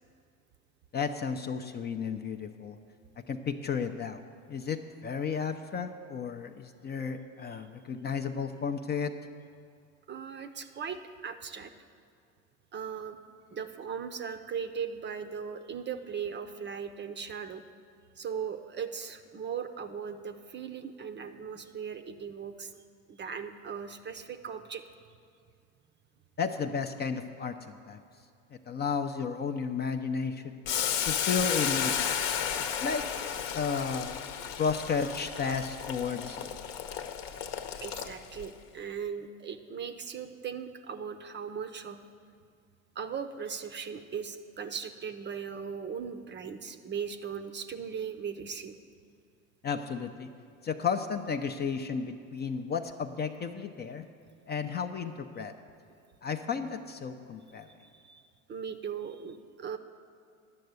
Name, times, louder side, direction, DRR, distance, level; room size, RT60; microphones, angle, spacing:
voice 1, 0.9-2.8 3.3-4.2 4.5-9.1 26.4-27.5 27.9-28.0 28.7-30.6 31.1-32.5 32.8-34.1 34.6-36.5 49.6-50.3 50.6-54.1 54.5-55.5 56.2-57.7, left 6 dB, 25° left, 6 dB, 0.5 m, -33 dB
voice 2, 10.1-11.7 12.7-13.2 13.5-17.6 18.2-22.7 23.1-24.8 37.8-42.0 42.9-48.8 57.7-58.2 58.5-59.8, right 7 dB, 30° right, 9 dB, 0.6 m, -38 dB
Boiling, 30.7-38.4, left 8 dB, 55° left, 0.9 m, -33 dB
10.5 x 6.6 x 8.0 m, 2.4 s
hypercardioid pair, 85°, 39 cm